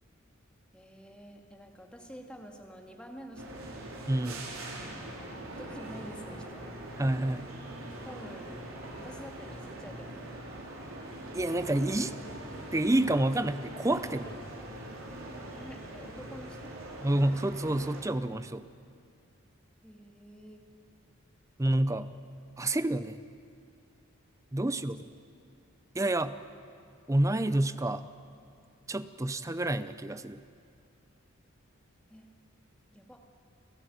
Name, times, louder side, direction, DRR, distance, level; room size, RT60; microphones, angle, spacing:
voice 1, 0.7-3.8 5.0-6.7 8.0-8.5 8.9-10.3 15.5-16.7 19.8-20.6 24.6-25.0 32.1-32.3 32.9-33.2, equal, 5° left, 2 dB, 2.0 m, -48 dB
sound 1, 3.4-18.0, right 1 dB, 80° right, 4.1 m, -43 dB
voice 2, 4.1-4.5 7.0-7.5 11.3-12.1 12.7-14.4 17.0-18.7 21.6-22.1 22.6-23.2 24.5-25.0 25.9-26.3 27.1-28.0 28.9-30.4, right 1 dB, 15° right, 13 dB, 0.6 m, -28 dB
28.5 x 14.5 x 9.3 m, 2.4 s
head